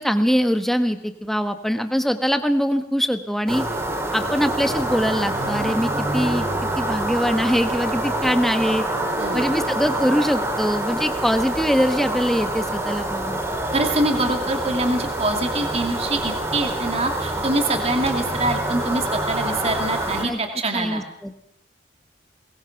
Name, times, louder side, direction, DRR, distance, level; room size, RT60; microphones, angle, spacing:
voice 1, 0.0-3.6 4.1-6.5 6.8-8.9 9.3-13.4 20.2-20.4 20.7-21.3, equal, ahead, 8 dB, 1.3 m, -22 dB
sound 1, 3.5-20.2, right 1 dB, 15° right, 3.3 m, -26 dB
Bowed string instrument, 4.1-8.5, right 1 dB, 90° right, 5.3 m, -39 dB
Wind instrument woodwind instrument, 4.9-7.1 7.4-10.5, equal, 60° right, 2.8 m, -37 dB
voice 2, 9.2-9.5 13.7-21.0, right 2 dB, 35° right, 4 dB, 2.5 m, -24 dB
22.0 x 20.5 x 5.9 m, 0.76 s
head